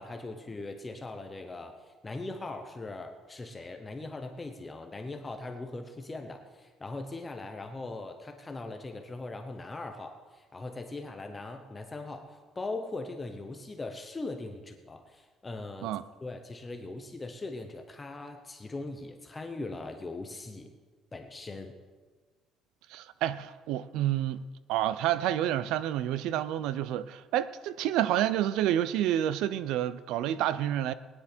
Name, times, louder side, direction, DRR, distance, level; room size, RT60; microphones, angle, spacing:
voice 1, 0.0-16.0 16.2-20.7 21.1-21.7, left 2 dB, 15° left, 0.8 m, -40 dB
voice 2, 22.9-24.4 24.7-30.9, right 12 dB, 90° right, 0.5 m, -29 dB
19.5 x 10.0 x 4.4 m
cardioid pair, 165°, 0 cm